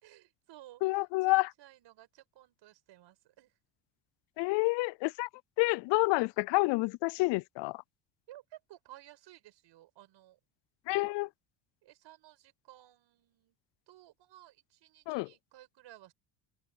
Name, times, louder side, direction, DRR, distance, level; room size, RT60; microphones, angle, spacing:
voice 1, 0.0-3.5 8.3-10.4 11.8-13.6 13.9-16.1, right 14 dB, 60° right, 5.3 m, -56 dB
voice 2, 0.8-1.5 4.4-5.3 5.6-7.8 10.9-11.3 15.1-15.3, left 24 dB, 60° left, 0.5 m, -28 dB
cardioid pair, 110°, 48 cm